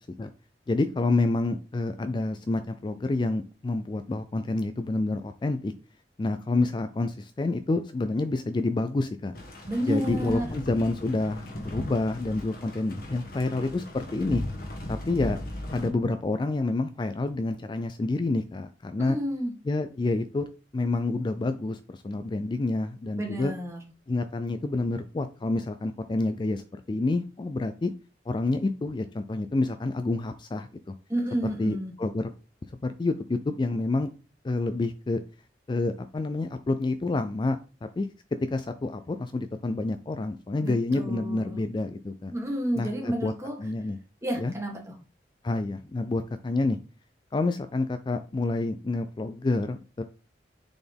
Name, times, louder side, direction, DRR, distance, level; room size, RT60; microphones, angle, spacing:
voice 1, 0.7-5.7 6.2-9.3 9.9-14.4 14.9-15.4 15.7-19.2 19.7-23.5 24.1-27.9 28.3-30.9 31.6-32.3 32.8-34.1 34.4-35.2 35.7-38.1 38.4-42.3 42.7-43.3 43.6-44.0 44.4-44.5 45.4-46.8 47.3-50.0, left 2 dB, 25° left, 9 dB, 0.3 m, -28 dB
sound 1, 9.3-15.9, left 1 dB, 55° left, 1.4 m, -37 dB
voice 2, 9.7-10.5 19.0-19.5 23.2-23.8 31.1-31.9 40.6-41.6 42.3-43.5 44.2-44.9, equal, 15° right, 0 dB, 1.7 m, -30 dB
6.7 x 4.1 x 3.5 m, 0.35 s
head